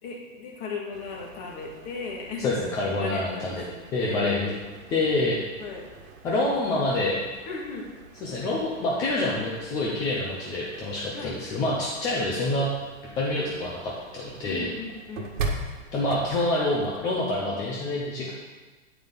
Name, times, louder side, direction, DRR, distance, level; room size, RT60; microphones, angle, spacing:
voice 1, 0.0-2.6 3.0-4.3 5.6-5.9 6.3-6.7 7.5-7.9 11.1-11.4 14.5-15.3, left 3 dB, 30° left, 0 dB, 2.0 m, -37 dB
sound 1, 0.9-17.2, right 3 dB, 80° right, 1.7 m, -41 dB
voice 2, 2.4-3.6 3.9-4.5 4.9-5.4 6.2-7.2 8.2-12.7 13.2-14.7 15.9-18.3, left 2 dB, 10° left, -4 dB, 0.5 m, -27 dB
9.0 x 9.0 x 3.9 m, 1.3 s
supercardioid pair, 165°, 39 cm